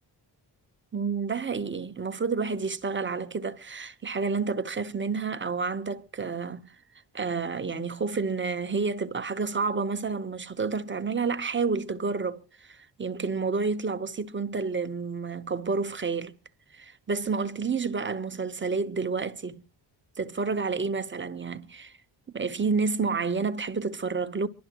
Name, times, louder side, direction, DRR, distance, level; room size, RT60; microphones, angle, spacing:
voice 1, 0.9-6.7 7.1-16.3 16.7-19.6 20.2-21.9 22.3-24.5, right 4 dB, 25° right, 0.9 m, -30 dB
24.5 x 12.0 x 2.9 m
wide cardioid pair, 150°, 45 cm